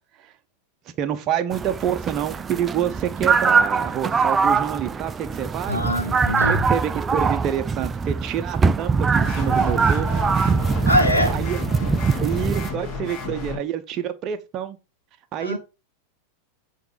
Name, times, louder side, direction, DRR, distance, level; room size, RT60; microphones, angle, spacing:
voice 1, 1.0-5.8 6.4-10.1 11.3-11.9 12.2-14.8 15.3-15.6, right 9 dB, 35° right, 0.9 m, -27 dB
sound 1, 1.5-12.7, right 5 dB, 20° right, 0.4 m, -22 dB
voice 2, 5.7-6.6 10.8-11.3 15.4-15.6, left 1 dB, 85° left, 1.8 m, -22 dB
sound 2, 9.2-13.6, left 4 dB, 35° left, 2.1 m, -32 dB
8.1 x 3.7 x 4.9 m
figure-of-eight pair, 90°, 0 cm